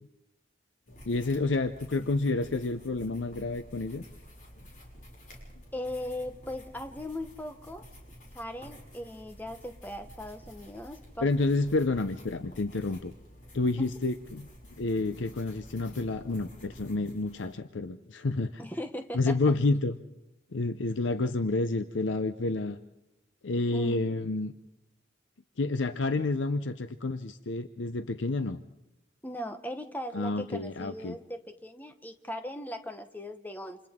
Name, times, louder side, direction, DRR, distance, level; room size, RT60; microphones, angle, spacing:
sound 1, 0.9-17.5, equal, 45° left, 6.2 m, -51 dB
voice 1, 1.0-4.1 11.2-13.1 13.5-14.5 14.8-18.7 19.1-20.0 20.5-22.8 23.4-24.5 25.6-28.6 30.1-31.2, left 3 dB, 80° left, 10 dB, 0.7 m, -29 dB
voice 2, 5.7-7.8 8.3-11.3 13.8-13.9 18.6-19.3 23.7-24.0 29.2-33.8, left 1 dB, 10° left, 7 dB, 1.0 m, -38 dB
28.5 x 27.5 x 3.7 m, 0.90 s
head